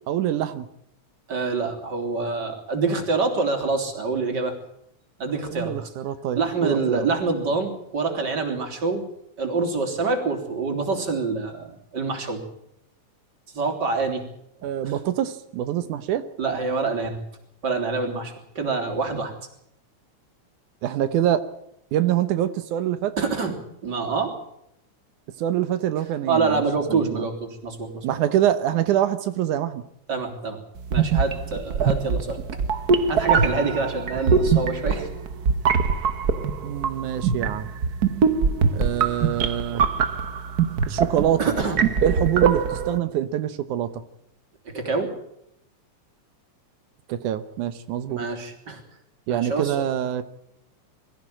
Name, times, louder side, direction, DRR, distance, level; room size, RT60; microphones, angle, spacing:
voice 1, 0.1-0.7 5.5-7.1 14.6-16.2 20.8-21.4 21.9-23.2 25.4-26.6 26.9-27.3 28.0-29.8 36.6-37.7 38.7-39.9 40.9-41.5 42.0-43.9 47.1-48.2 49.3-50.2, right 11 dB, 85° right, 11 dB, 2.5 m, -25 dB
voice 2, 1.3-4.5 5.2-5.8 6.4-9.1 9.4-12.4 13.5-14.2 14.8-14.9 16.4-17.2 17.6-19.3 23.2-23.6 23.8-24.3 26.3-28.1 30.1-30.6 30.9-32.4 33.1-35.1 41.4-41.8 44.7-45.1 48.1-48.8 49.3-49.8, right 4 dB, 35° right, 5 dB, 4.0 m, -26 dB
sound 1, 30.8-43.0, right 6 dB, 60° right, 1.0 m, -22 dB
23.5 x 15.0 x 8.9 m, 0.76 s
omnidirectional pair, 3.4 m